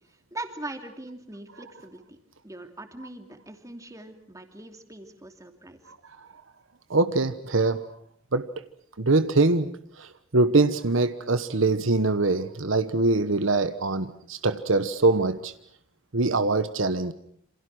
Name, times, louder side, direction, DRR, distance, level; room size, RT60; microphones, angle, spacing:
voice 1, 0.3-2.2 2.4-5.8, right 2 dB, 15° right, 6 dB, 2.8 m, -41 dB
voice 2, 6.9-7.9 8.3-8.5 9.0-9.7 10.0-15.5 16.1-17.1, right 3 dB, 70° right, 11 dB, 1.2 m, -23 dB
28.5 x 27.0 x 6.2 m, 0.63 s
head